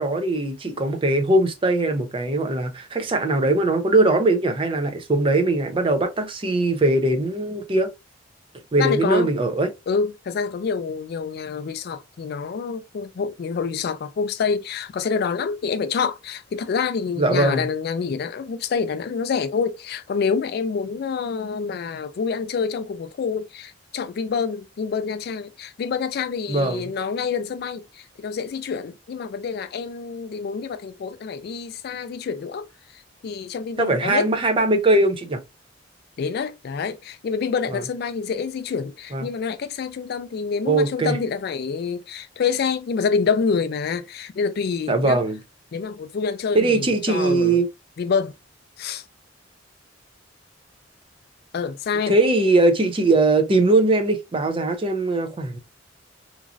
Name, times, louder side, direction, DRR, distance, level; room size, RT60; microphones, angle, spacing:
voice 1, 0.0-7.9 8.7-9.7 17.2-17.7 26.5-26.8 33.8-35.4 37.7-37.8 39.1-39.3 40.7-41.2 44.9-45.4 46.5-47.7 52.1-55.6, right 2 dB, 30° right, 0.5 m, -20 dB
voice 2, 8.8-9.3 9.9-32.6 32.9-34.3 36.2-45.2 45.7-47.6 48.0-48.3 48.8-49.0 51.5-52.1, left 5 dB, 55° left, 0.3 m, -27 dB
3.0 x 2.5 x 2.4 m
head